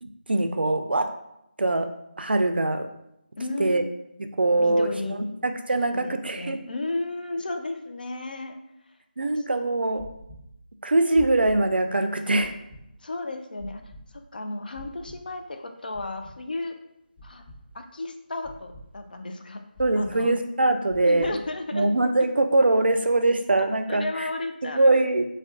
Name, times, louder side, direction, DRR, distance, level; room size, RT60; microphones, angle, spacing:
voice 1, 0.0-1.1 1.6-1.9 2.2-2.9 3.6-3.8 4.2-6.6 9.2-10.1 10.8-12.5 19.8-21.4 21.7-24.3 24.6-25.3, right 2 dB, 85° right, 7 dB, 0.3 m, -23 dB
voice 2, 3.4-3.9 4.6-5.3 5.9-8.6 9.4-9.7 13.0-13.8 14.3-16.8 17.2-17.4 17.7-19.6 19.9-20.3 21.0-21.9 23.9-25.1, left 2 dB, 60° left, 6 dB, 0.4 m, -34 dB
sound 1, 10.0-10.4 11.1-11.6 12.4-12.8 13.6-14.0 14.7-15.2 15.9-16.3 17.2-17.6 18.4-18.8 19.7-20.1 20.9-21.3, equal, 30° left, 1.0 m, -44 dB
2.4 x 2.2 x 3.4 m, 0.82 s
figure-of-eight pair, 165°, 5 cm